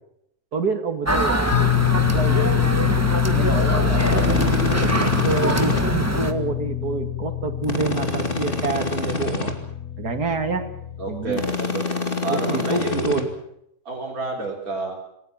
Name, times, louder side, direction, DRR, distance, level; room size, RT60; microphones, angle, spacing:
voice 1, 0.5-2.9 3.3-9.5 10.0-10.7 11.1-11.4 12.3-13.3, right 4 dB, 90° right, 6 dB, 2.9 m, -28 dB
sound 1, 1.1-6.3, right 1 dB, 10° right, 1.6 m, -23 dB
sound 2, 1.5-11.6, left 14 dB, 60° left, 1.5 m, -25 dB
sound 3, 3.9-5.8 7.6-9.5 11.3-13.2, left 3 dB, 35° left, 2.7 m, -26 dB
voice 2, 11.0-11.9 12.2-13.3 13.8-14.9, right 3 dB, 65° right, -3 dB, 4.5 m, -29 dB
28.0 x 18.0 x 7.5 m, 0.77 s
omnidirectional pair, 1.6 m